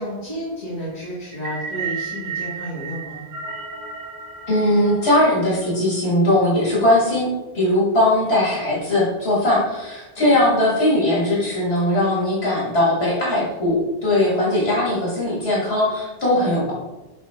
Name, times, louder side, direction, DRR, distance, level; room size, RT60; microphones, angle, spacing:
voice 1, 0.0-3.2 10.2-10.3 14.1-14.2, equal, 40° left, -9 dB, 1.9 m, -31 dB
sound 1, 1.3-5.6, right 5 dB, 85° right, 1.2 m, -33 dB
voice 2, 4.5-7.3 7.5-16.7, left 1 dB, 75° left, -7 dB, 2.2 m, -19 dB
7.6 x 3.7 x 3.7 m, 1.1 s
omnidirectional pair, 1.1 m